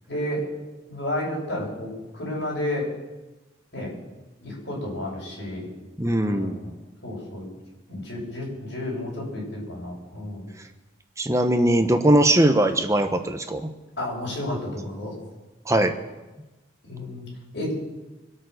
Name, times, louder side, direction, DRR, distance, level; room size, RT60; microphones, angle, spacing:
voice 1, 0.1-0.5 0.9-2.9 3.7-3.9 4.4-5.7 6.2-6.7 7.0-7.5 7.9-10.5 14.0-15.1 16.9-17.3 17.5-17.7, left 1 dB, 60° left, -4 dB, 6.9 m, -31 dB
voice 2, 6.0-6.6 11.2-13.7 15.7-15.9, right 1 dB, 15° right, 7 dB, 1.0 m, -20 dB
24.5 x 8.7 x 6.6 m, 1.1 s
head